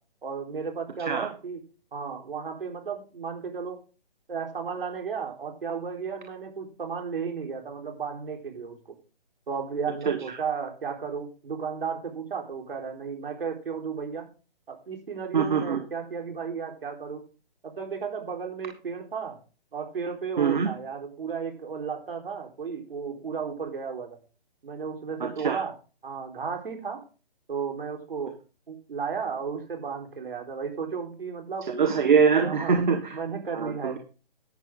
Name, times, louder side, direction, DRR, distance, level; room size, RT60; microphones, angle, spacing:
voice 1, 0.2-1.6 1.9-3.8 4.3-9.0 9.5-14.2 14.7-17.2 17.6-19.4 19.7-24.2 24.6-25.7 26.0-27.0 27.5-28.3 28.7-31.7 32.4-32.8 33.1-34.0, right 6 dB, 65° right, 3 dB, 4.2 m, -34 dB
voice 2, 10.1-10.4 15.3-15.8 20.4-20.7 25.2-25.6 31.7-33.2 33.5-34.0, right 6 dB, 50° right, 6 dB, 1.5 m, -23 dB
11.5 x 9.2 x 3.8 m, 0.34 s
hypercardioid pair, 175°, 30 cm